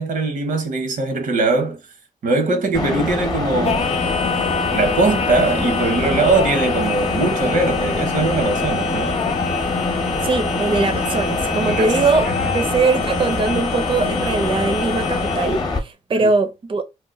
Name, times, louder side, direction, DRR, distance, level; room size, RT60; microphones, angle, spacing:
voice 1, 0.0-1.8 2.2-3.9 4.7-9.2 11.7-11.9 12.3-12.4 16.1-16.3, right 3 dB, 80° right, 0.9 m, -21 dB
sound 1, 2.7-15.8, left 2 dB, 30° left, 0.8 m, -24 dB
Singing, 3.6-15.7, left 6 dB, 50° left, 0.5 m, -27 dB
voice 2, 10.2-12.3 12.5-16.8, right 3 dB, 40° right, 0.5 m, -21 dB
2.8 x 2.2 x 3.7 m
wide cardioid pair, 150°, 14 cm